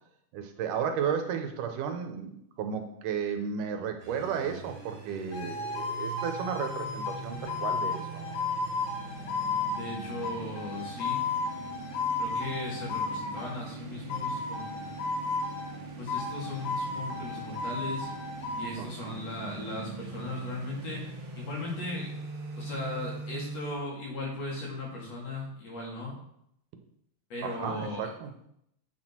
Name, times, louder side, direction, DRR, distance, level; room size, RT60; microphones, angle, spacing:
voice 1, 0.3-8.4 18.8-19.3 27.4-28.3, right 7 dB, 80° right, 6 dB, 2.4 m, -34 dB
sound 1, 4.0-23.7, right 4 dB, 55° right, 1.6 m, -42 dB
sound 2, 5.3-13.6 14.1-15.8 16.1-18.7, left 4 dB, 75° left, 2.7 m, -34 dB
voice 2, 9.6-11.2 12.2-15.0 16.0-18.1 18.6-22.1 22.6-26.1 27.3-28.1, left 2 dB, 55° left, -3 dB, 3.2 m, -37 dB
8.3 x 6.3 x 4.4 m, 0.75 s
omnidirectional pair, 3.7 m